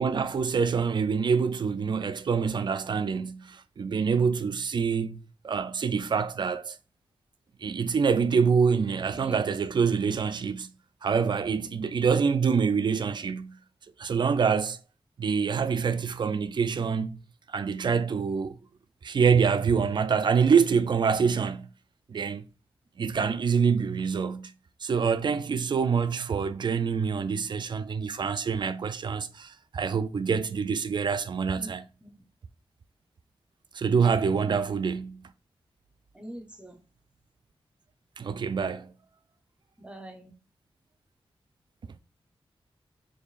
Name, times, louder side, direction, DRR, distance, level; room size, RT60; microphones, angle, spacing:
voice 1, 0.0-6.8 7.6-10.7 11.0-13.6 14.0-14.8 15.2-17.2 17.5-18.6 19.0-21.7 22.1-22.4 23.0-24.5 24.8-31.8 33.7-35.2 38.2-38.9 41.9-42.0, right 6 dB, 50° right, 0.3 m, -26 dB
voice 2, 9.1-9.5 31.5-31.7 32.0-32.1 34.0-34.3 36.1-36.8 39.8-40.3, right 1 dB, 10° right, 0.8 m, -43 dB
6.8 x 2.7 x 2.4 m
wide cardioid pair, 125°, 10 cm